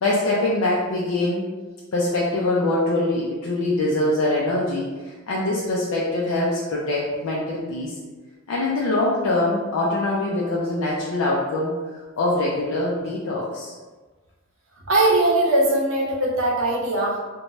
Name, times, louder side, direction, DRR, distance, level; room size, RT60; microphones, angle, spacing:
voice 1, 0.0-1.4 1.9-8.0 8.5-11.7 12.2-13.7, left 2 dB, 80° left, -5 dB, 0.4 m, -23 dB
voice 2, 14.9-17.2, right 2 dB, 70° right, -3 dB, 0.7 m, -20 dB
2.7 x 2.2 x 3.0 m, 1.3 s
head